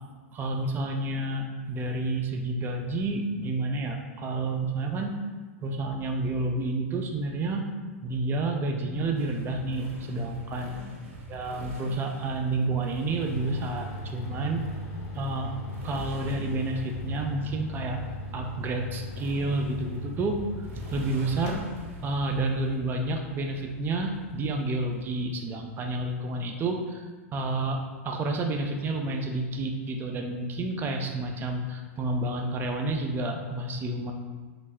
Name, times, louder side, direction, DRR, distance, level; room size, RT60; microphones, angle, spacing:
voice 1, 0.3-5.2 5.6-7.6 8.0-10.8 11.3-14.6 15.1-15.5 15.8-18.0 18.3-20.4 20.7-21.6 22.0-27.0 27.3-34.1, right 2 dB, 30° right, 3 dB, 0.4 m, -30 dB
Motorcycle, 9.2-24.9, right 1 dB, 75° right, 0.7 m, -44 dB
sound 1, 13.1-22.0, left 1 dB, 50° left, 0.6 m, -39 dB
3.1 x 2.0 x 3.5 m, 1.4 s
hypercardioid pair, 105°, 7 cm